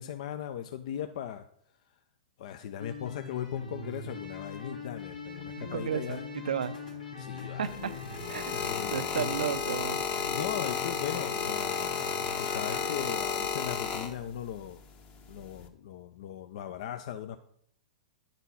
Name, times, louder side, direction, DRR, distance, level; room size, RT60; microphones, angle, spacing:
voice 1, 0.0-1.5 2.4-6.3 7.2-7.8 8.1-9.5 10.3-11.8 12.4-14.8 15.3-17.4, left 10 dB, 55° left, 8 dB, 0.5 m, -38 dB
sound 1, 2.8-13.2, left 4 dB, 90° left, 2.1 m, -42 dB
voice 2, 5.6-6.7 7.6-7.9 8.3-10.0, right 8 dB, 75° right, 15 dB, 0.4 m, -34 dB
sound 2, 7.7-14.5 15.4-15.7, left 6 dB, 30° left, 0.9 m, -33 dB
10.0 x 4.1 x 5.6 m, 0.69 s
hypercardioid pair, 110°, 4 cm